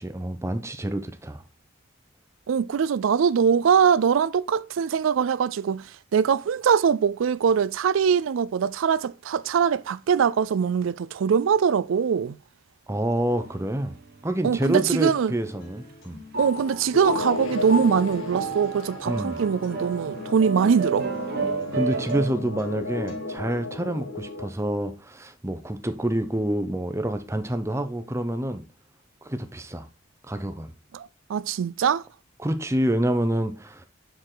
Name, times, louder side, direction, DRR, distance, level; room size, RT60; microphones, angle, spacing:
voice 1, 0.0-1.4 12.9-13.9 14.2-16.2 19.1-19.4 21.7-28.6 29.2-29.9 30.2-30.7 32.4-33.8, right 1 dB, 15° right, 0.7 m, -27 dB
voice 2, 2.5-5.9 6.1-12.4 14.4-15.3 16.4-21.1 30.9-32.0, right 7 dB, 75° right, 0.3 m, -22 dB
sound 1, 13.3-14.0 14.8-15.4 16.3-22.3, right 3 dB, 50° right, 1.1 m, -32 dB
Acoustic guitar, 15.4-23.4, left 2 dB, 70° left, 3.3 m, -43 dB
sound 2, 16.9-24.5, left 2 dB, 85° left, 1.5 m, -35 dB
6.7 x 4.7 x 3.8 m
head